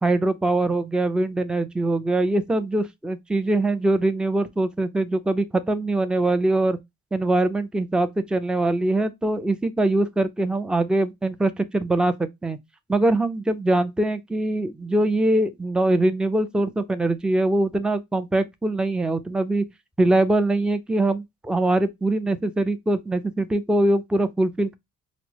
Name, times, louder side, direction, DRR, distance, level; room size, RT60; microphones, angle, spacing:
voice 1, 0.0-6.8 7.1-12.6 12.9-19.6 20.0-24.8, right 2 dB, 5° right, 0.4 m, -22 dB
4.4 x 2.0 x 2.8 m
cardioid pair, 90°, 30 cm